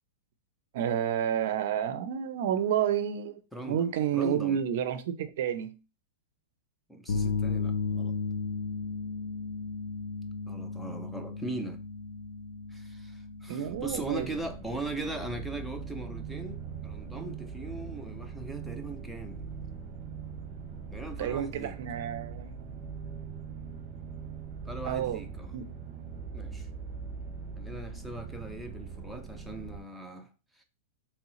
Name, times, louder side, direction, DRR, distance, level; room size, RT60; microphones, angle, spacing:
voice 1, 0.7-5.7 13.5-14.3 21.2-22.7 24.8-25.2 25.5-25.6, right 9 dB, 60° right, 0.5 m, -30 dB
voice 2, 3.5-4.6 6.9-8.1 10.5-11.8 12.7-19.5 20.9-21.8 24.6-25.6 26.3-26.7 27.6-30.6, right 2 dB, ahead, 0.5 m, -40 dB
sound 1, 7.1-23.0, left 4 dB, 75° left, 0.6 m, -37 dB
sound 2, 13.6-29.8, right 6 dB, 30° right, 1.0 m, -41 dB
3.6 x 3.1 x 3.0 m
hypercardioid pair, 145°, 0 cm